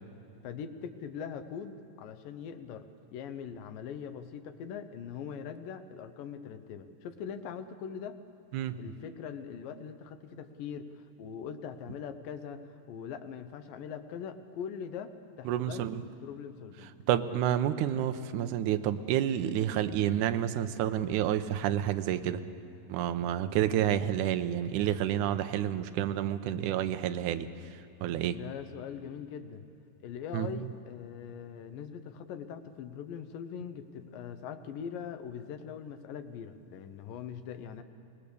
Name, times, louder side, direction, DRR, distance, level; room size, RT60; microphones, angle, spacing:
voice 1, 0.4-8.2 8.8-12.6 12.9-15.1 15.4-16.9 28.3-29.7 30.0-37.8, left 7 dB, 85° left, 8 dB, 2.7 m, -42 dB
voice 2, 15.5-16.0 17.1-22.4 22.9-27.5 28.0-28.4 30.3-30.5, right 11 dB, 75° right, 9 dB, 2.0 m, -29 dB
24.5 x 19.5 x 7.0 m, 2.8 s
omnidirectional pair, 3.9 m